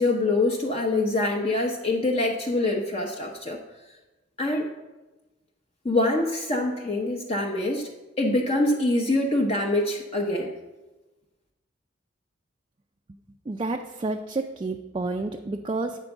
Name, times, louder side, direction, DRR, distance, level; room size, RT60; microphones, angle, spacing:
voice 1, 0.0-3.6 4.4-4.7 5.8-7.9 8.2-10.5, left 2 dB, 30° left, 1 dB, 0.7 m, -25 dB
voice 2, 13.5-16.0, right 3 dB, 25° right, 4 dB, 0.4 m, -30 dB
9.0 x 4.4 x 7.0 m, 1.1 s
head